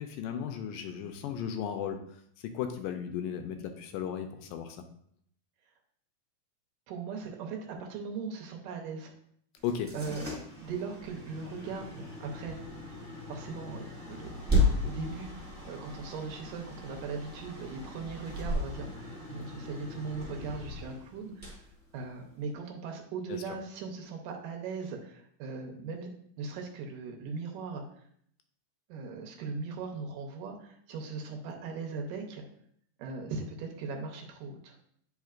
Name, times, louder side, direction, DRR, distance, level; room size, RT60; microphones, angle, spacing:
voice 1, 0.0-2.0 2.5-4.8 9.6-9.9 23.3-23.4, left 8 dB, 80° left, 6 dB, 2.1 m, -35 dB
voice 2, 6.9-9.1 9.9-12.6 13.3-21.6 21.9-26.1 26.4-27.8 28.9-32.4 33.0-34.8, right 4 dB, 75° right, 2 dB, 2.4 m, -39 dB
sound 1, 9.6-22.5, left 1 dB, 5° right, 1.0 m, -35 dB
9.3 x 5.0 x 2.4 m, 0.66 s
omnidirectional pair, 4.0 m